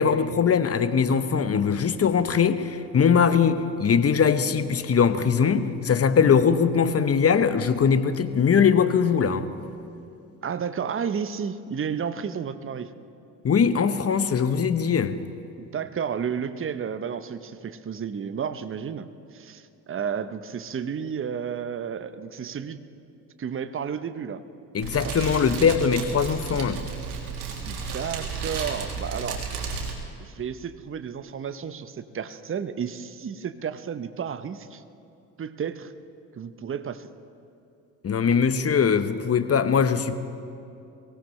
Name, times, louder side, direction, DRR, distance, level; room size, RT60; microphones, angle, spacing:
voice 1, 0.0-9.5 13.4-15.2 24.7-26.8 38.0-40.1, left 6 dB, 30° left, 11 dB, 0.9 m, -21 dB
voice 2, 10.4-12.9 15.6-22.8 23.4-24.4 25.0-25.2 27.6-29.5 30.2-34.8 35.4-35.9 36.3-37.1, right 7 dB, 30° right, 12 dB, 0.8 m, -32 dB
Fire, 24.8-29.9, right 5 dB, 85° right, 1.8 m, -33 dB
23.5 x 16.5 x 3.2 m, 2.6 s
hypercardioid pair, 55°, 44 cm